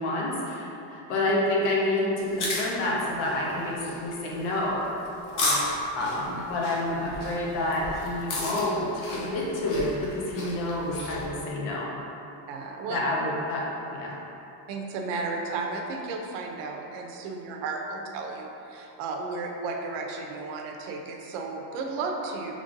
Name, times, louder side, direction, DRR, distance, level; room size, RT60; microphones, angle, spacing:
voice 1, 0.0-4.8 5.9-11.9 12.9-13.6 13.9-14.2, left 1 dB, 85° left, -4 dB, 1.0 m, -28 dB
sound 1, 2.2-11.3, left 2 dB, 40° left, 0.7 m, -34 dB
voice 2, 5.3-6.1 12.5-13.0 14.7-22.5, right 3 dB, 60° right, 1 dB, 0.6 m, -34 dB
5.2 x 3.3 x 2.5 m, 3.0 s
cardioid pair, 165°, 49 cm